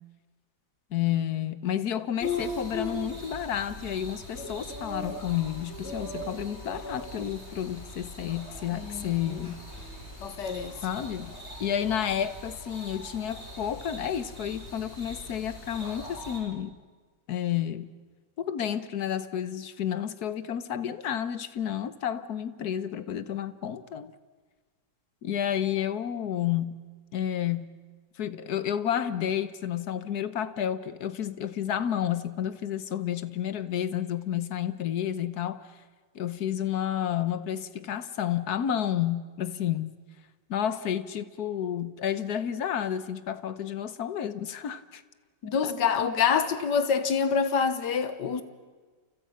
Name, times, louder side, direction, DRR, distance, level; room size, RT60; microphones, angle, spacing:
voice 1, 0.9-9.6 10.8-11.3 11.6-16.7 17.3-17.9 18.4-24.1 25.2-26.8 27.1-27.8 28.2-35.7 36.1-39.9 40.5-45.0 45.6-45.7, left 10 dB, 65° left, 1.5 m, -31 dB
sound 1, 2.2-16.4, left 2 dB, 40° left, 5.3 m, -40 dB
voice 2, 8.7-9.5 10.2-10.7 45.4-48.4, left 6 dB, 85° left, 1.9 m, -27 dB
30.0 x 28.5 x 5.7 m
omnidirectional pair, 1.8 m